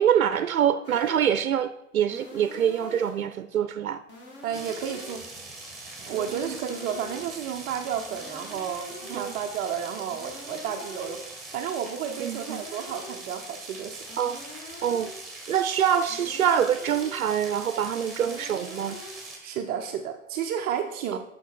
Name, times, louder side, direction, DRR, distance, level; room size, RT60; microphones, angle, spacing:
voice 1, 0.0-4.0 6.1-6.6 9.1-9.3 12.2-12.6 14.2-14.4 14.8-15.1 15.5-19.0 21.1-21.2, right 9 dB, 85° right, 12 dB, 0.5 m, -25 dB
sound 1, 0.8-1.4 2.1-3.4 4.1-5.4 6.1-7.4 8.1-9.4 10.1-11.4 12.1-13.4 14.1-15.4 16.1-17.4 18.1-19.4, left 2 dB, 25° left, 1.8 m, -45 dB
voice 2, 4.4-5.3 6.0-14.0 19.4-21.2, right 8 dB, 25° right, 4 dB, 0.5 m, -32 dB
sound 2, 4.5-19.4, right 2 dB, ahead, 1.9 m, -42 dB
8.9 x 5.8 x 4.6 m, 0.81 s
figure-of-eight pair, 105°, 41 cm